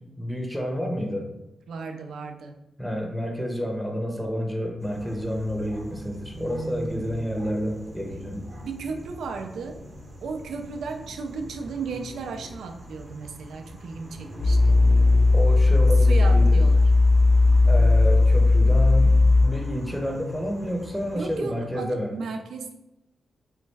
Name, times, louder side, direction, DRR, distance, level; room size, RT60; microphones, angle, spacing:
voice 1, 0.2-1.3 2.8-8.4 15.3-16.6 17.7-22.1, equal, 5° left, 1 dB, 0.7 m, -29 dB
voice 2, 1.7-2.5 6.3-7.3 8.6-9.8 10.2-14.8 16.0-16.8 21.2-22.7, right 4 dB, 85° right, 5 dB, 0.3 m, -35 dB
sound 1, 4.8-21.4, equal, 40° right, 0.6 m, -42 dB
sound 2, 14.4-19.4, left 3 dB, 75° left, 0.5 m, -17 dB
3.1 x 2.3 x 3.2 m, 0.90 s
cardioid pair, 65°, 0 cm